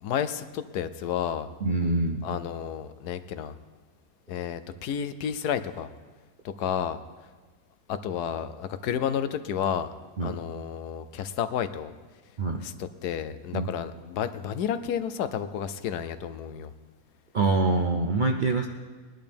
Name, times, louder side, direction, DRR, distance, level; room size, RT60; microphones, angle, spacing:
voice 1, 0.0-1.5 2.2-3.6 4.3-5.9 6.4-7.0 7.9-9.9 10.2-11.9 12.6-16.7, left 8 dB, 85° left, 12 dB, 1.2 m, -31 dB
voice 2, 1.6-2.2 10.2-10.4 12.4-12.6 13.5-13.7 17.3-18.7, right 3 dB, 55° right, 3 dB, 0.5 m, -25 dB
20.5 x 11.0 x 3.5 m, 1.3 s
omnidirectional pair, 1.7 m